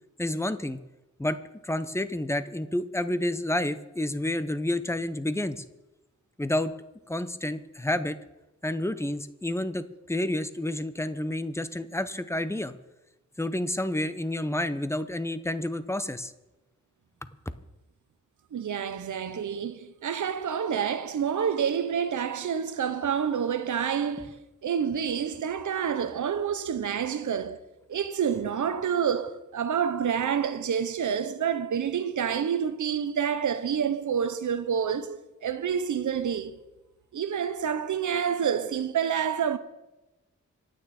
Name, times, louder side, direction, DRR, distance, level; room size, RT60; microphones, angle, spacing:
voice 1, 0.2-0.8 1.2-1.4 1.6-5.6 6.4-6.7 7.1-8.2 8.6-12.7 13.4-16.3, left 1 dB, 10° left, 0.7 m, -29 dB
voice 2, 18.5-27.6 27.9-36.6 37.1-39.6, right 7 dB, 75° right, 0.9 m, -28 dB
26.5 x 9.1 x 4.3 m
wide cardioid pair, 130°, 30 cm